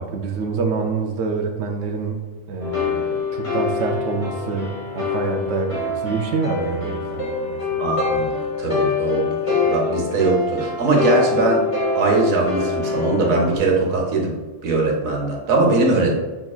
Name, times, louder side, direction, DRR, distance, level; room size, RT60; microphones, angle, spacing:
voice 1, 0.0-2.2 2.5-8.0, right 4 dB, 70° right, 3 dB, 0.9 m, -26 dB
sound 1, 2.6-13.6, left 4 dB, 25° left, 1.1 m, -25 dB
voice 2, 7.8-8.3 8.6-11.7 11.9-14.4 14.6-16.2, right 3 dB, 90° right, -1 dB, 1.4 m, -20 dB
6.0 x 3.7 x 2.3 m, 1.3 s
omnidirectional pair, 1.4 m